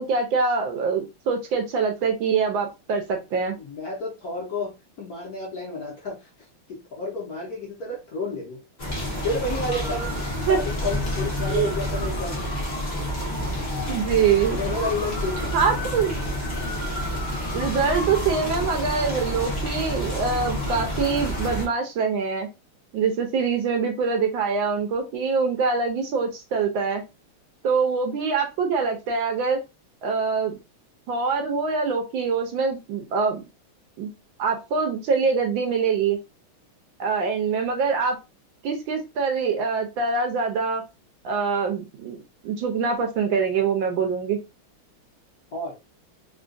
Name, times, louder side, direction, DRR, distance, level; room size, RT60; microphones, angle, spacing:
voice 1, 0.0-3.6 10.5-10.6 11.5-11.7 13.9-14.6 15.5-16.2 17.5-22.5 22.9-27.0 27.6-29.6 30.0-30.5 31.1-33.4 34.0-34.1 34.4-36.2 37.0-38.2 38.6-40.8 41.2-42.2 42.4-44.4, right 5 dB, 75° right, 3 dB, 1.2 m, -24 dB
voice 2, 3.6-4.7 5.0-8.6 9.2-10.1 10.5-12.5 14.6-15.5 45.5-45.8, left 2 dB, 55° left, -2 dB, 1.1 m, -31 dB
sound 1, 8.8-21.7, equal, 35° left, 0.7 m, -28 dB
3.6 x 2.4 x 2.5 m, 0.26 s
omnidirectional pair, 2.4 m